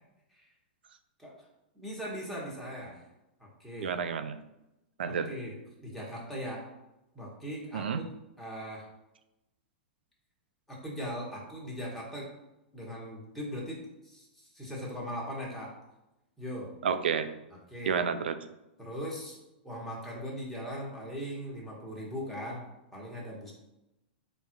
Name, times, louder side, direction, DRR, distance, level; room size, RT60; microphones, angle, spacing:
voice 1, 1.7-3.0 3.4-4.0 5.1-6.6 7.1-8.1 8.4-8.9 10.7-12.3 12.7-15.8 16.4-16.7 17.7-18.0 18.8-19.4 19.6-22.7 22.9-23.5, equal, ahead, -5 dB, 1.4 m, -39 dB
voice 2, 3.8-4.4 5.0-5.3 7.7-8.0 16.8-17.3 17.9-18.4, right 6 dB, 80° right, 10 dB, 0.4 m, -30 dB
3.8 x 2.5 x 4.5 m, 0.93 s
hypercardioid pair, 115°, 5 cm